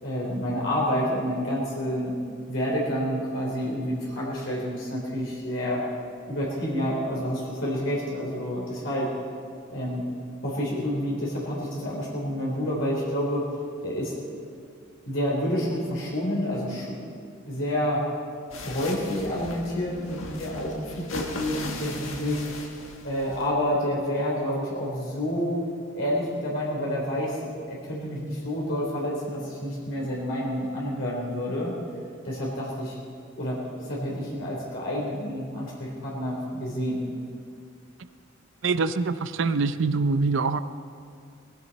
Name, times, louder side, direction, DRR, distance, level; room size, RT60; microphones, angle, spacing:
voice 1, 0.0-2.1 2.5-5.8 6.3-9.1 9.7-10.0 10.4-13.5 13.8-14.2 15.0-17.0 17.4-18.0 18.5-22.4 23.0-25.6 25.9-31.7 32.2-32.9 33.4-33.6 33.9-37.0, equal, 70° left, -5 dB, 3.9 m, -29 dB
sound 1, 18.5-23.5, left 2 dB, 85° left, 1.8 m, -38 dB
voice 2, 38.6-40.6, right 4 dB, 65° right, 12 dB, 0.6 m, -24 dB
19.5 x 15.5 x 4.2 m, 2.3 s
head